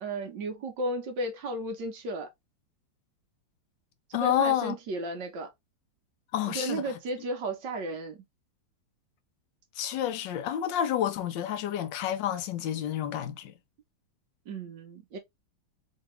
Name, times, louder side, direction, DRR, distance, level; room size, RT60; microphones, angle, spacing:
voice 1, 0.0-2.3 4.1-5.5 6.5-8.2 14.5-15.2, right 2 dB, 65° right, 1.4 m, -34 dB
voice 2, 4.1-4.8 6.3-6.8 9.8-13.5, left 10 dB, 70° left, 1.2 m, -29 dB
3.8 x 2.8 x 3.1 m
omnidirectional pair, 2.2 m